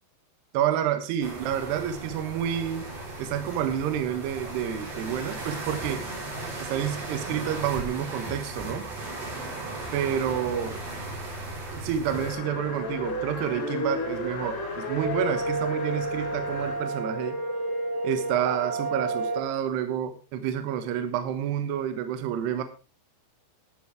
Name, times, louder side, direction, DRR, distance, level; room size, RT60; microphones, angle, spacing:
voice 1, 0.5-2.9 3.2-6.1 6.6-8.9 9.9-10.8 11.7-17.4 18.0-22.6, right 9 dB, 70° right, 9 dB, 3.0 m, -29 dB
sound 1, 1.2-12.3, right 2 dB, 45° right, 5.8 m, -36 dB
sound 2, 11.7-19.4, right 1 dB, 35° left, 0.3 m, -31 dB
sound 3, 12.0-17.0, left 6 dB, 90° left, 1.6 m, -40 dB
15.0 x 10.0 x 3.6 m, 0.34 s
omnidirectional pair, 5.7 m